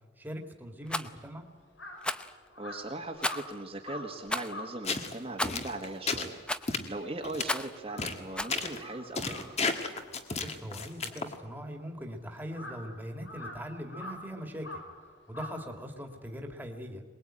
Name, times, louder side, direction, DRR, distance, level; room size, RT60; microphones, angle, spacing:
voice 1, 0.2-1.5 10.4-17.0, equal, 10° right, 3 dB, 2.2 m, -41 dB
Crow, 0.8-7.4 7.7-16.3, left 1 dB, 85° left, 5.4 m, -47 dB
Rattle, 0.9-1.1 2.0-2.3 3.2-3.6 4.3-4.5 5.4-5.7 6.5-6.8 7.4-7.8 8.4-8.6, left 1 dB, 5° left, 0.7 m, -33 dB
voice 2, 2.6-6.4 6.9-9.6, right 2 dB, 30° right, 1 dB, 1.7 m, -39 dB
sound 1, 4.8-5.1 5.4-6.3 6.7-6.9 7.2-7.4 8.0-8.2 8.5-8.8 9.2-11.3, left 4 dB, 35° left, 1.7 m, -32 dB
22.5 x 21.0 x 8.9 m, 1.3 s
head